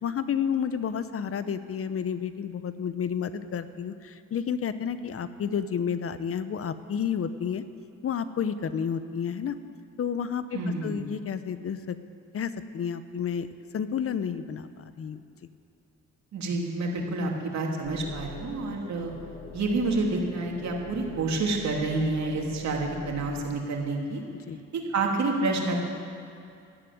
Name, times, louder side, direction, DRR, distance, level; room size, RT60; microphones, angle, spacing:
voice 1, 0.0-7.6 8.0-9.6 10.0-12.0 12.3-13.5 13.7-15.2 24.5-24.6, left 7 dB, 50° left, 12 dB, 0.8 m, -31 dB
voice 2, 10.5-11.0 16.3-19.1 19.5-24.2 24.7-25.8, right 3 dB, 65° right, 0 dB, 2.9 m, -28 dB
sound 1, 17.8-23.4, left 5 dB, 80° left, 2.7 m, -43 dB
12.5 x 12.0 x 9.3 m, 2.4 s
cardioid pair, 90°, 30 cm